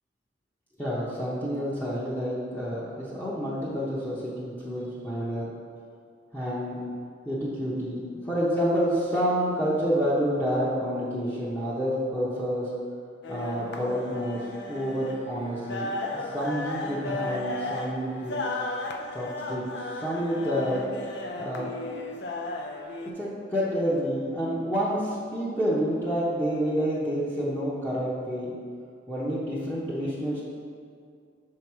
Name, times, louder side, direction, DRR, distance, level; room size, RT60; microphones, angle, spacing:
voice 1, 0.8-5.5 6.3-6.8 7.2-12.7 13.3-14.4 14.7-18.4 19.1-19.6 19.9-20.9 21.4-22.1 23.2-28.6 29.1-30.4, equal, 10° left, -8 dB, 0.8 m, -28 dB
sound 1, 13.2-23.1, left 2 dB, 65° left, 0.5 m, -35 dB
6.3 x 4.7 x 4.7 m, 2.3 s
head